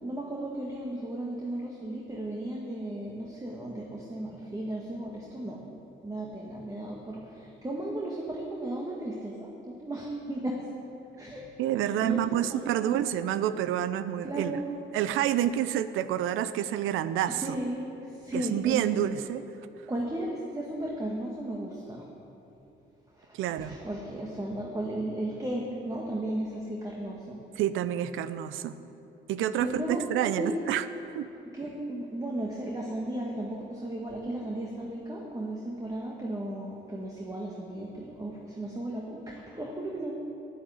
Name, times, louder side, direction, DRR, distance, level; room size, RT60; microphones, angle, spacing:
voice 1, 0.0-5.6 6.0-10.6 11.2-11.4 11.8-13.0 14.2-14.8 17.4-19.0 19.9-22.1 23.2-27.4 29.6-30.6 31.5-40.1, right 1 dB, 15° right, -2 dB, 1.5 m, -35 dB
voice 2, 11.6-14.6 14.9-17.4 18.3-19.4 23.3-23.8 27.6-28.8 29.3-30.9 31.1-31.3, right 11 dB, 90° right, 13 dB, 0.5 m, -28 dB
8.7 x 8.5 x 9.3 m, 2.9 s
cardioid pair, 90°, 20 cm